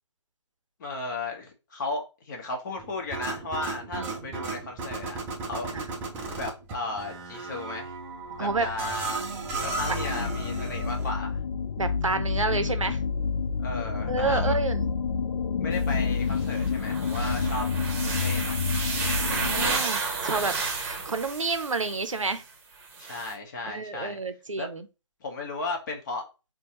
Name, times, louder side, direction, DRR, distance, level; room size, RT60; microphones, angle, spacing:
voice 1, 0.8-5.2 5.4-5.7 6.3-7.9 8.4-9.3 9.6-11.4 13.6-14.5 15.6-17.7 18.0-18.6 23.0-24.2 24.6-24.7 25.2-26.2, left 2 dB, 40° left, 1.0 m, -35 dB
sound 1, 2.8-11.1, right 3 dB, 10° right, 0.4 m, -35 dB
voice 2, 3.9-4.3 5.7-5.8 8.4-8.7 11.8-13.0 14.1-14.9 19.3-22.4 23.7-24.9, right 4 dB, 85° right, 0.6 m, -30 dB
sound 2, 8.1-19.8, left 5 dB, 60° left, 0.5 m, -29 dB
sound 3, 15.7-15.8 16.3-22.4 22.8-23.3, right 4 dB, 30° right, 0.9 m, -32 dB
4.4 x 2.2 x 2.9 m
figure-of-eight pair, 140°, 16 cm